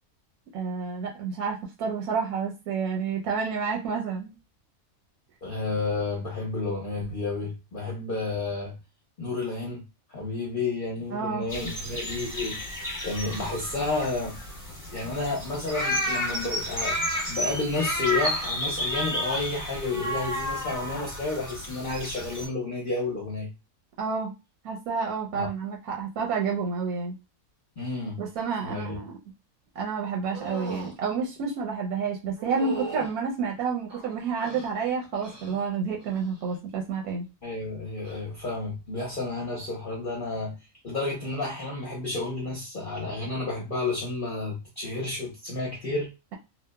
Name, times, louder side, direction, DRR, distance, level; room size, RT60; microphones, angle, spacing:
voice 1, 0.5-4.3 11.1-11.5 13.3-13.4 24.0-24.3 24.6-27.2 28.2-29.1 29.8-37.3, right 5 dB, 85° right, 1.1 m, -29 dB
voice 2, 5.4-8.8 9.2-9.8 10.1-12.8 13.0-14.4 14.9-17.0 17.3-23.5 25.3-25.5 27.8-28.2 28.6-29.0 37.4-40.5 40.8-46.1, left 3 dB, 45° left, 0.7 m, -31 dB
sound 1, 11.5-22.5, equal, 15° left, 1.0 m, -31 dB
sound 2, 30.3-30.9 32.4-33.1 33.9-34.7 35.2-35.6 36.0-36.4 38.0-38.2, right 4 dB, 45° right, 0.3 m, -37 dB
2.9 x 2.0 x 2.2 m
omnidirectional pair, 1.6 m